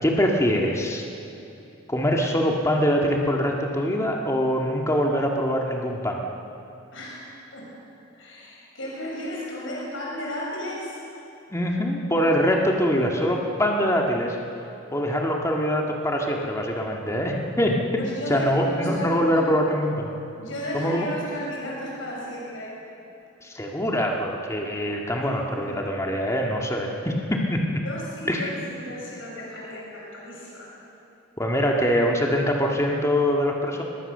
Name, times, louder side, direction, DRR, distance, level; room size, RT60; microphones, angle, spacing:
voice 1, 0.0-1.1 1.9-6.2 11.5-14.4 14.9-17.8 18.3-20.2 20.7-21.1 23.4-27.6 28.3-28.5 31.4-33.8, equal, 15° left, 0 dB, 2.0 m, -23 dB
voice 2, 6.9-7.7 8.1-11.0 18.0-19.4 20.4-22.8 25.2-25.7 27.8-30.7, equal, 80° left, -3 dB, 6.3 m, -34 dB
23.0 x 21.0 x 6.8 m, 2.9 s
head